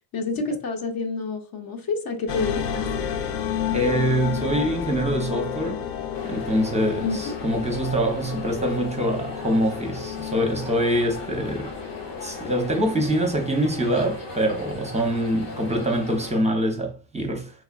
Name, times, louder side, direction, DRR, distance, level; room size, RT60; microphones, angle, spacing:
voice 1, 0.1-2.9 7.0-7.3, left 4 dB, 50° left, 0.7 m, -28 dB
sound 1, 2.3-13.5, left 8 dB, 85° left, 0.6 m, -32 dB
voice 2, 3.7-5.9 6.2-11.7 12.2-17.5, right 1 dB, 15° right, 0.6 m, -24 dB
sound 2, 6.1-16.3, left 2 dB, 65° left, 1.2 m, -38 dB
3.1 x 2.4 x 2.2 m
supercardioid pair, 75°, 47 cm